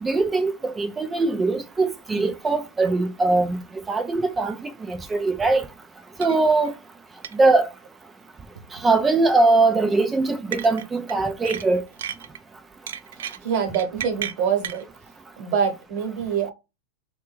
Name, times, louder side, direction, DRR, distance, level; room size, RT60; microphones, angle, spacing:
voice 1, 0.0-3.6 3.9-5.6 6.2-6.7 7.3-7.7 8.8-11.8, right 3 dB, 10° right, 0.4 m, -21 dB
sound 1, 6.2-6.4 6.6-6.7 7.2-7.4 8.6-8.8 10.5-11.2 11.5-12.4 12.9-14.8, right 9 dB, 85° right, 0.4 m, -33 dB
voice 2, 13.4-14.8 15.4-16.5, right 7 dB, 40° right, 1.0 m, -25 dB
3.3 x 2.2 x 3.0 m
supercardioid pair, 155°, 0 cm